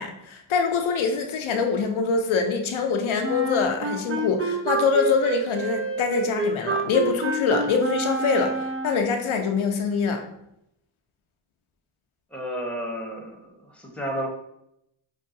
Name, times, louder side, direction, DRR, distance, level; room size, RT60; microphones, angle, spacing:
voice 1, 0.0-10.2, left 5 dB, 75° left, 4 dB, 0.6 m, -24 dB
Wind instrument woodwind instrument, 3.2-9.2, right 2 dB, 30° right, 0.4 m, -28 dB
voice 2, 12.3-13.5 13.8-14.3, equal, ahead, 1 dB, 1.0 m, -31 dB
5.3 x 2.3 x 2.6 m, 0.78 s
cardioid pair, 45°, 49 cm